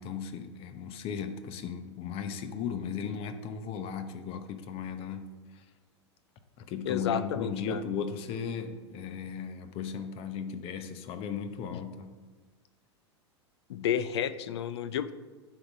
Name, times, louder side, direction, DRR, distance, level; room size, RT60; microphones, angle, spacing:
voice 1, 0.0-5.3 5.5-5.6 6.6-12.1, left 6 dB, 40° left, 9 dB, 0.8 m, -36 dB
voice 2, 6.9-7.8 11.7-11.8 13.7-15.1, left 9 dB, 65° left, 15 dB, 0.5 m, -31 dB
10.0 x 4.1 x 5.3 m, 1.4 s
hypercardioid pair, 95°, 15 cm